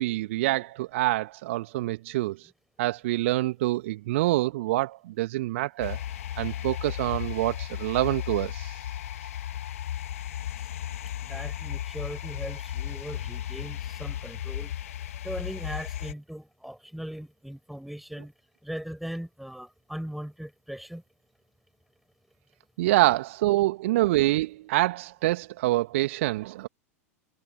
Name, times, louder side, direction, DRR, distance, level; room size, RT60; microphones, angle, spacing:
voice 1, 0.0-2.5 2.8-6.0 6.4-8.7 22.8-26.7, right 17 dB, 55° right, 1.8 m, -26 dB
sound 1, 5.8-16.1, left 11 dB, 60° left, 2.1 m, -35 dB
voice 2, 11.2-14.7 15.2-18.3 18.6-21.0, equal, ahead, 6.4 m, -39 dB
figure-of-eight pair, 90°, 8 cm